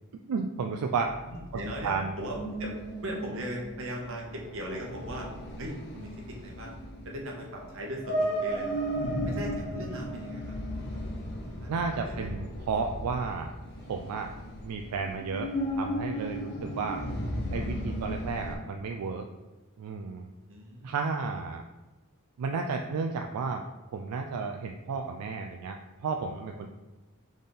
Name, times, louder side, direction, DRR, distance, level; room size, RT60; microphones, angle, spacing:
voice 1, 0.3-1.1 1.8-2.1 11.7-13.5 13.9-14.3 14.6-15.5 15.8-17.0 17.5-19.3 19.8-20.3 20.8-21.6 22.4-23.6 23.9-26.7, right 4 dB, 90° right, 3 dB, 0.3 m, -32 dB
sound 1, 1.1-18.5, equal, 50° left, 0.7 m, -35 dB
voice 2, 1.2-2.8 3.0-5.3 5.6-6.8 7.0-8.9 9.2-11.2 11.5-11.7 11.9-12.3 20.5-21.0, right 1 dB, 60° right, 0 dB, 1.0 m, -39 dB
3.7 x 3.3 x 4.1 m, 1.2 s
head